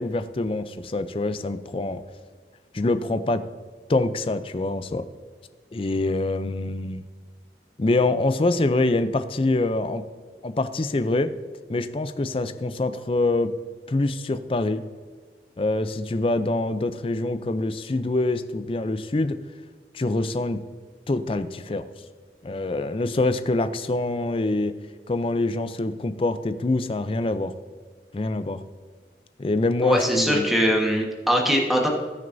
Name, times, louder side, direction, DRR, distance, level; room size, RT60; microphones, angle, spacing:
voice 1, 0.0-2.0 2.7-3.5 3.9-5.1 5.7-7.0 7.8-10.0 10.4-11.3 11.7-13.5 13.9-14.8 15.6-19.4 19.9-20.6 21.1-21.9 22.4-24.7 25.1-27.5 28.1-28.6 29.4-30.6, left 2 dB, 30° left, 10 dB, 0.4 m, -25 dB
voice 2, 29.8-31.9, equal, ahead, -1 dB, 1.2 m, -21 dB
18.5 x 6.3 x 2.6 m, 1.5 s
head